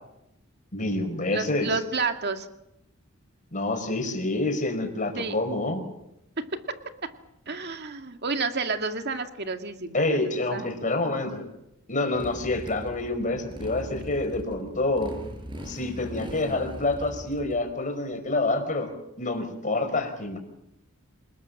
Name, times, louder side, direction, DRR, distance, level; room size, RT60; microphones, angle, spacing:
voice 1, 0.7-1.8 3.5-5.8 9.9-11.5 11.9-15.1 15.7-18.9 19.2-20.4, left 2 dB, 40° left, 5 dB, 5.2 m, -27 dB
voice 2, 1.3-2.5 5.2-5.4 6.4-7.1 7.5-10.8, right 4 dB, 50° right, 6 dB, 2.2 m, -31 dB
Motorcycle, 12.2-17.6, equal, 25° right, 5.7 m, -40 dB
27.5 x 20.0 x 7.7 m, 0.83 s
head